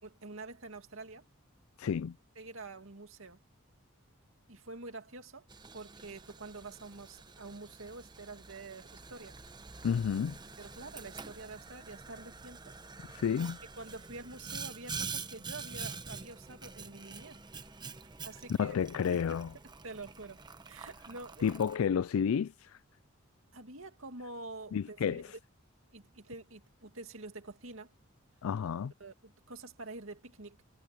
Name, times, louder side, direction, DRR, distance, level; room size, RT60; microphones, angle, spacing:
voice 1, 0.0-1.2 2.4-3.4 4.5-5.5 5.7-9.4 10.6-12.7 13.7-17.4 18.2-18.8 19.1-19.4 19.8-20.4 20.7-21.5 23.5-25.2 25.9-27.9 29.0-30.6, right 3 dB, 70° right, 2.4 m, -47 dB
voice 2, 1.8-2.2 9.8-10.4 13.1-13.6 18.6-19.5 21.4-22.8 24.7-25.3 28.4-28.9, left 7 dB, 80° left, 0.4 m, -31 dB
Boiling, 5.5-21.8, right 4 dB, 20° right, 0.9 m, -46 dB
head